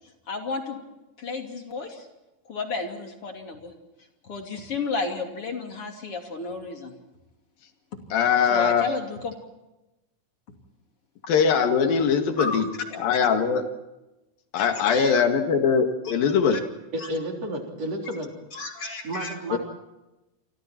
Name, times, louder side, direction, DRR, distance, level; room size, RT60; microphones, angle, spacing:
voice 1, 0.3-0.8 1.2-2.1 2.4-3.7 4.2-6.9 8.5-9.3 12.4-12.7 14.6-15.3 16.5-16.6 17.0-17.1 18.5-19.3, left 4 dB, 45° left, 3 dB, 3.4 m, -32 dB
voice 2, 8.1-8.9 11.3-12.7 13.0-13.6 14.5-16.6 19.5-19.6, left 6 dB, 85° left, 6 dB, 3.7 m, -21 dB
voice 3, 16.9-18.3 19.0-19.6, right 1 dB, 45° right, 1 dB, 4.7 m, -31 dB
29.0 x 25.5 x 4.4 m, 0.99 s
omnidirectional pair, 4.0 m